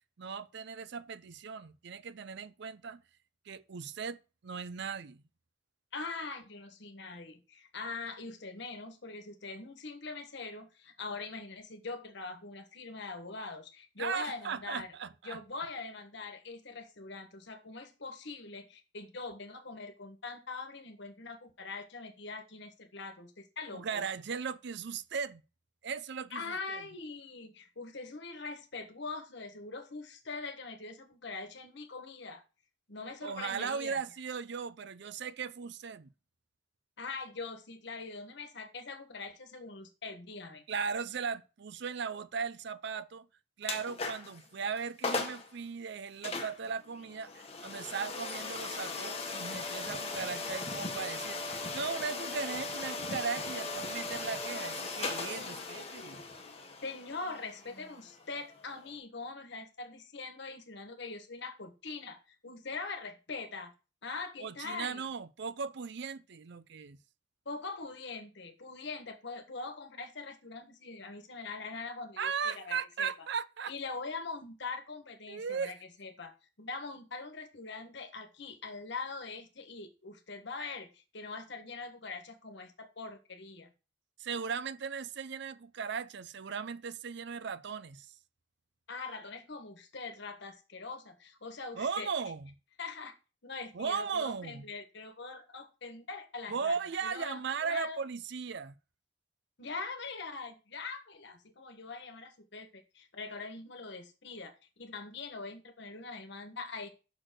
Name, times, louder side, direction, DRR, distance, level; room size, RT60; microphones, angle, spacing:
voice 1, 0.2-3.0 3.5-5.2 14.0-15.4 23.7-25.4 25.8-26.8 33.2-36.1 40.7-43.3 43.6-56.2 64.4-67.0 72.2-73.7 75.3-75.7 84.2-88.1 91.8-92.5 93.7-94.7 96.5-98.7, right 6 dB, 65° right, 0.5 m, -37 dB
voice 2, 5.9-14.9 15.2-24.0 26.3-32.4 32.9-34.0 37.0-40.6 56.8-63.7 64.0-65.0 67.4-73.3 73.7-83.7 88.9-92.1 92.8-93.1 93.4-98.0 99.6-106.9, left 4 dB, 65° left, 1.3 m, -43 dB
sound 1, 43.6-44.4 44.8-44.9 45.0-45.5 46.2-59.0, left 3 dB, 30° left, 1.1 m, -38 dB
6.2 x 4.5 x 6.1 m
head